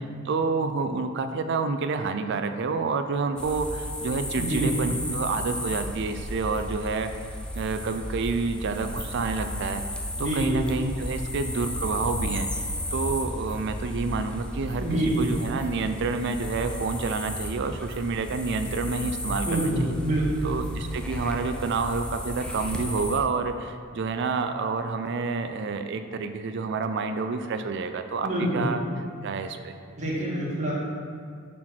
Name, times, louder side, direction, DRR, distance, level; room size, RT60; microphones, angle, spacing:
voice 1, 0.2-7.1 7.5-9.8 10.2-14.8 15.2-19.9 20.4-28.8 29.2-29.7, right 4 dB, 55° right, 8 dB, 0.4 m, -29 dB
sound 1, 3.4-23.2, left 1 dB, 5° left, 0.5 m, -34 dB
voice 2, 4.2-4.9 10.2-10.6 14.8-15.3 19.4-20.5 28.2-28.7 30.0-30.7, right 1 dB, 35° right, -6 dB, 1.9 m, -26 dB
6.3 x 4.4 x 5.8 m, 2.2 s
head